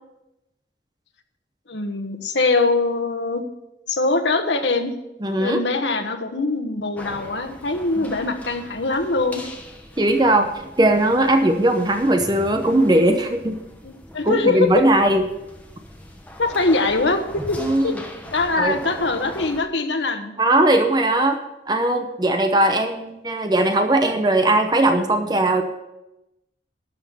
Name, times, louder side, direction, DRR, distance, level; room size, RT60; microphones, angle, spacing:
voice 1, 1.7-3.4 3.9-4.9 5.4-9.4 13.8-14.8 16.4-17.9 18.3-20.3, left 3 dB, 85° left, 6 dB, 1.3 m, -22 dB
voice 2, 5.2-5.6 8.0-8.2 10.0-10.5 10.8-13.6 14.2-15.2 17.6-17.9 18.6-18.8 20.4-21.4 21.7-25.6, right 1 dB, 25° right, 5 dB, 0.8 m, -19 dB
sound 1, 7.0-19.6, left 1 dB, 10° left, 1.0 m, -40 dB
12.0 x 6.3 x 6.8 m, 0.92 s
head